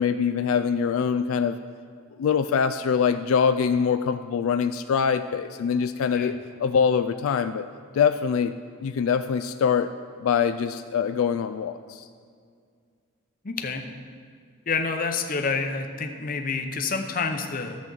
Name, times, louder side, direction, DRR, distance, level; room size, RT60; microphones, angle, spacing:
voice 1, 0.0-1.6 2.2-6.3 6.6-7.7 7.9-8.5 8.8-9.9 10.2-12.1, left 6 dB, 80° left, 10 dB, 0.3 m, -23 dB
voice 2, 13.4-13.9 14.7-17.8, left 4 dB, 40° left, 5 dB, 0.7 m, -28 dB
13.5 x 7.4 x 3.9 m, 2.1 s
head